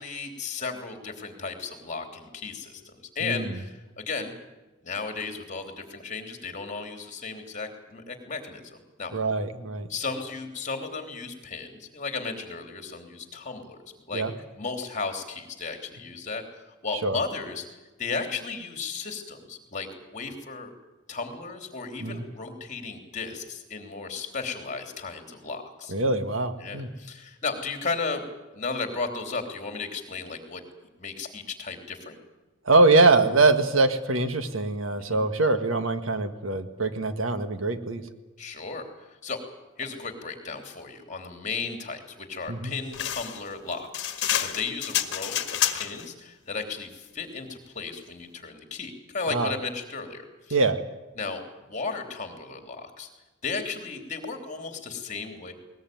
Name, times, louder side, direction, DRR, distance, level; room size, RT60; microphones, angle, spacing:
voice 1, 0.0-4.3 4.8-9.1 9.9-14.2 14.5-17.7 18.0-20.7 21.1-25.9 26.6-28.2 28.5-30.6 31.0-32.2 35.0-35.2 38.4-39.4 39.8-50.6 51.1-53.1 53.4-55.5, left 4 dB, 35° left, 5 dB, 3.4 m, -35 dB
voice 2, 9.1-9.9 14.1-14.3 17.0-17.2 22.0-22.2 25.9-26.9 32.6-38.0 42.5-42.7 49.3-49.5 50.5-50.8, right 3 dB, 70° right, 9 dB, 1.7 m, -23 dB
sound 1, 42.9-46.1, left 10 dB, 60° left, 1.8 m, -28 dB
21.0 x 19.5 x 9.4 m, 1.1 s
head